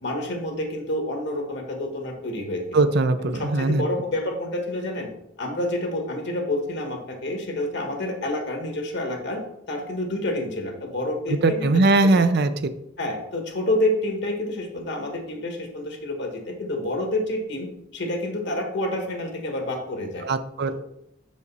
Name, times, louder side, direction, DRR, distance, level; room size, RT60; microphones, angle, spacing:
voice 1, 0.0-2.9 3.2-5.1 5.4-9.4 9.7-11.7 12.1-12.2 13.0-20.3, left 1 dB, 60° left, 3 dB, 1.5 m, -28 dB
voice 2, 2.7-3.8 11.4-12.5 20.2-20.7, right 3 dB, 55° right, 11 dB, 0.5 m, -20 dB
6.5 x 5.1 x 4.1 m, 0.80 s
head